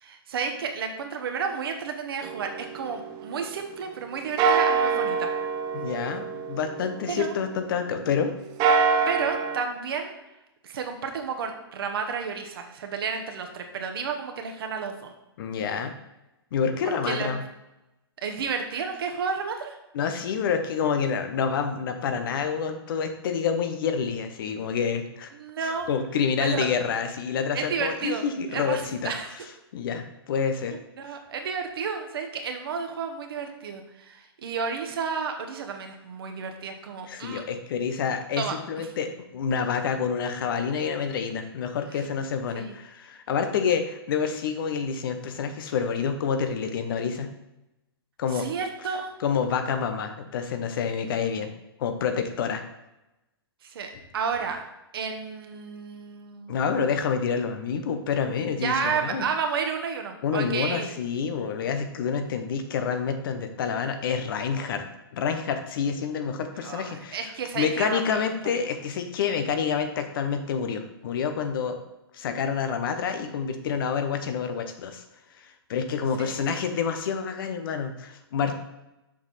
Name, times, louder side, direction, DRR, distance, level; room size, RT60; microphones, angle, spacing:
voice 1, 0.0-5.3 7.1-7.3 9.1-10.1 10.6-15.1 16.8-17.4 18.2-19.8 25.3-25.9 26.4-26.7 27.5-28.3 28.5-29.3 31.0-37.4 38.4-38.9 42.5-42.8 48.3-49.1 53.6-54.6 54.9-56.6 58.6-60.9 66.6-68.3 76.2-76.4, right 5 dB, 65° right, 5 dB, 1.2 m, -31 dB
sound 1, 2.2-4.0 4.4-7.9 8.4-9.6, right 5 dB, 30° right, 0.6 m, -26 dB
voice 2, 5.7-8.3 15.4-15.9 16.5-17.4 19.9-25.3 25.6-29.1 29.7-30.7 37.1-47.3 48.2-48.4 49.2-51.5 51.8-52.6 56.5-59.2 60.2-64.8 65.1-71.8 72.1-75.0 75.4-78.6, left 6 dB, 60° left, 7 dB, 1.0 m, -28 dB
6.8 x 5.4 x 4.1 m, 0.94 s
hypercardioid pair, 120°, 13 cm